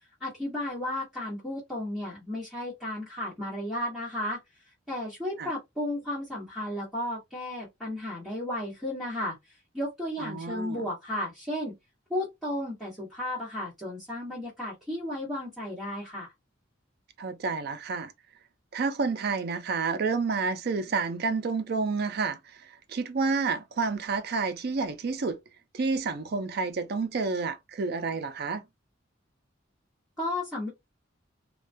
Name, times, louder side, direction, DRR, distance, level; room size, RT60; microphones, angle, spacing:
voice 1, 0.2-4.4 4.9-11.8 12.1-16.3 30.2-30.7, left 1 dB, ahead, 1.1 m, -34 dB
voice 2, 10.2-10.9 17.2-18.1 18.7-25.4 25.7-28.6, right 4 dB, 50° right, 0.4 m, -29 dB
2.2 x 2.2 x 2.5 m
head